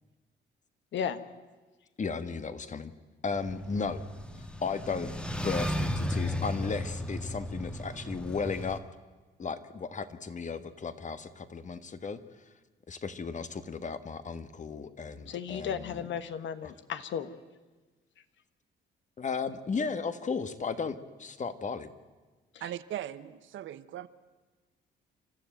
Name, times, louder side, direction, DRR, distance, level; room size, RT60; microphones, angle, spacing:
voice 1, 0.9-1.2 15.3-17.3 22.5-22.7, left 8 dB, 70° left, 11 dB, 1.4 m, -35 dB
voice 2, 2.0-2.9 3.2-4.1 4.4-5.1 5.4-8.8 9.4-12.2 12.9-16.0 16.6-16.7 19.2-21.9, left 5 dB, 40° left, 11 dB, 1.5 m, -35 dB
sound 1, 3.3-8.8, equal, 5° left, 1.5 m, -35 dB
voice 3, 22.6-24.1, right 12 dB, 75° right, 14 dB, 1.0 m, -39 dB
29.0 x 13.0 x 9.2 m, 1.3 s
cardioid pair, 90°, 20 cm